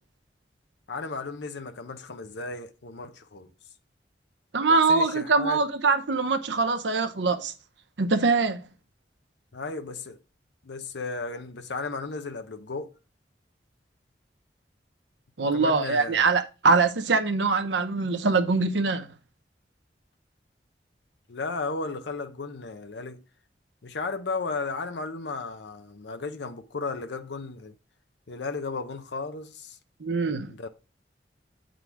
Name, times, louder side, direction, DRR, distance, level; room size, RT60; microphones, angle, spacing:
voice 1, 0.9-3.5 4.7-5.6 9.5-10.2 10.6-12.9 15.5-16.3 21.3-23.2 23.8-27.8 28.3-29.8 30.5-30.7, left 3 dB, 80° left, 0.7 m, -34 dB
voice 2, 4.5-7.5 8.0-8.7 15.4-19.1 30.0-30.5, right 4 dB, 90° right, 0.8 m, -23 dB
8.4 x 3.8 x 4.6 m
head